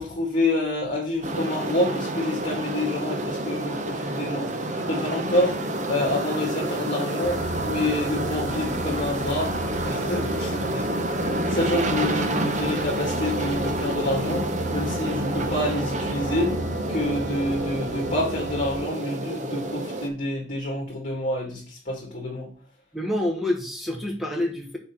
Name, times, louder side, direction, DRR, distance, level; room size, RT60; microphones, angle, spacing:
voice 1, 0.0-4.5 4.9-5.6 5.9-9.6 9.9-10.9 11.2-16.6 16.9-22.5, left 1 dB, 40° left, -2 dB, 1.7 m, -28 dB
sound 1, 1.2-20.1, right 1 dB, 40° right, 0.9 m, -29 dB
sound 2, 7.2-18.8, right 1 dB, 75° right, 1.5 m, -35 dB
voice 2, 22.9-24.8, left 1 dB, ahead, 1 dB, 1.2 m, -27 dB
6.2 x 4.4 x 5.9 m, 0.42 s
head